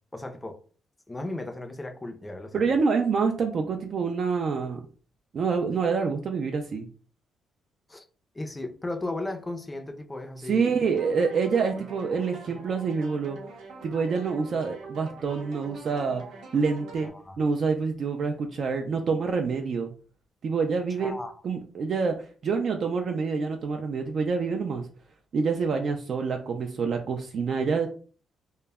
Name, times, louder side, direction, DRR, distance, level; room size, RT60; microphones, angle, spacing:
voice 1, 0.1-0.6 1.1-2.8 7.9-8.0 8.3-10.7 17.1-17.4 21.0-21.3, left 2 dB, 15° left, 0.4 m, -35 dB
voice 2, 2.5-4.8 5.3-6.9 10.4-13.4 13.8-16.2 16.5-17.1 17.4-19.9 20.4-21.1 21.4-24.9 25.3-27.9, right 5 dB, 55° right, 0.3 m, -27 dB
sound 1, 10.9-17.1, right 2 dB, 90° right, 0.8 m, -44 dB
2.1 x 2.0 x 3.3 m
cardioid pair, 90°, 0 cm